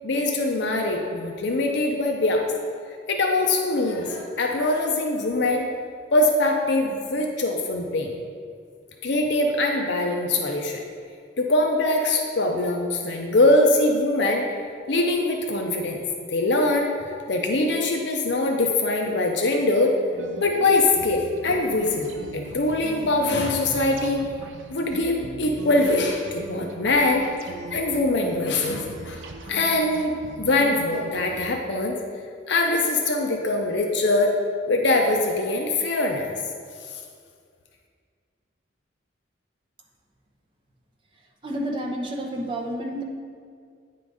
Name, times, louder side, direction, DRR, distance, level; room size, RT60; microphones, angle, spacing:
voice 1, 0.0-2.5 3.1-5.7 6.1-8.2 9.0-10.8 11.4-14.4 14.9-16.0 16.3-19.9 20.4-24.2 24.7-32.0 32.5-34.3 34.7-36.3 36.8-37.0, left 2 dB, 60° left, 2 dB, 0.6 m, -23 dB
sound 1, 20.1-31.4, right 2 dB, 70° right, 0.5 m, -39 dB
voice 2, 41.4-43.0, right 1 dB, 25° right, -2 dB, 0.8 m, -30 dB
9.2 x 3.8 x 4.8 m, 2.1 s
head